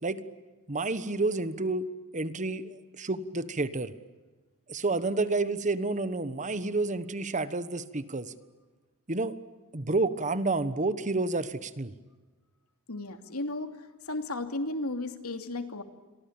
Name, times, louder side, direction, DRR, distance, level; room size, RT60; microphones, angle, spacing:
voice 1, 0.7-1.9 2.1-3.9 4.7-8.3 9.1-9.3 9.7-11.9, right 3 dB, 35° right, 13 dB, 1.3 m, -30 dB
voice 2, 12.9-13.8 14.0-15.8, left 2 dB, 80° left, 7 dB, 2.9 m, -34 dB
29.0 x 23.5 x 8.8 m, 1.3 s
head